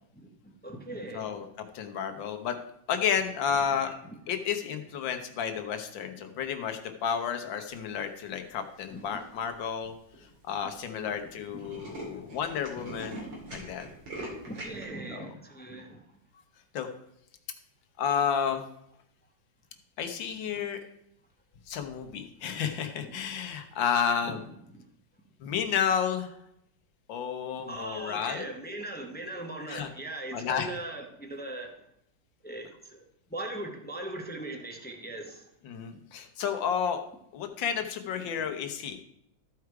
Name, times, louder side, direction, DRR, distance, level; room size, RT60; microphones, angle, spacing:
voice 1, 0.1-1.4 4.0-4.2 6.3-6.4 8.9-9.1 11.2-12.3 12.8-13.0 13.3-13.5 13.8-13.9 14.4-16.0 23.1-23.2 24.7-24.8 27.7-31.8 32.4-33.0 33.3-35.5 35.9-36.0, right 2 dB, 10° left, 2 dB, 0.5 m, -40 dB
voice 2, 1.1-1.5 1.7-2.5 2.9-4.0 4.3-9.9 10.4-13.1 13.5-13.9 15.1-15.3 16.7-16.9 18.0-18.6 20.0-20.8 21.7-24.4 25.4-26.3 27.1-28.5 29.7-29.9 30.3-30.8 35.7-37.0 37.3-39.0, left 7 dB, 80° left, 6 dB, 1.6 m, -31 dB
Tools, 8.8-9.2 9.8-9.9 10.1-10.2 10.5-10.7 11.0-11.1 11.4-14.8, right 1 dB, 75° right, 3.2 m, -42 dB
13.5 x 4.7 x 4.7 m, 0.76 s
omnidirectional pair, 2.0 m